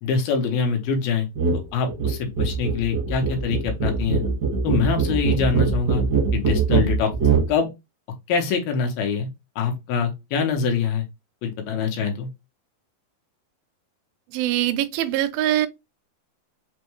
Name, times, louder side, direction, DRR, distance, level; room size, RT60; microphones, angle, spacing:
voice 1, 0.0-1.3 1.7-4.2 4.6-6.0 6.3-7.1 7.5-7.7 8.3-9.3 9.6-11.1 11.4-12.3, left 5 dB, 80° left, 2.7 m, -24 dB
sound 1, 1.3-1.6 1.9-7.5, right 5 dB, 60° right, 1.0 m, -22 dB
voice 2, 14.3-15.7, right 13 dB, 80° right, 2.2 m, -23 dB
6.1 x 2.2 x 3.1 m
omnidirectional pair, 4.3 m